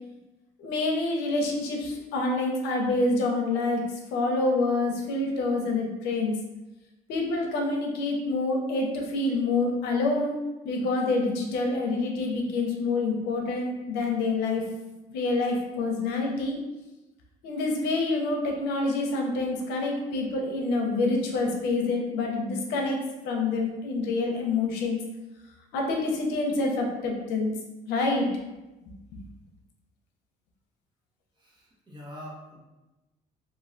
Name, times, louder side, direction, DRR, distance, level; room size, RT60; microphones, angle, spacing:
voice 1, 0.6-3.8 4.1-6.3 7.1-10.4 10.6-14.6 15.1-16.6 17.4-25.0 25.7-27.5 27.9-28.3 28.8-29.2, left 3 dB, 90° left, 1 dB, 0.7 m, -27 dB
voice 2, 31.4-32.6, equal, 25° right, -5 dB, 1.1 m, -44 dB
3.1 x 2.6 x 2.6 m, 1.0 s
cardioid pair, 110°, 17 cm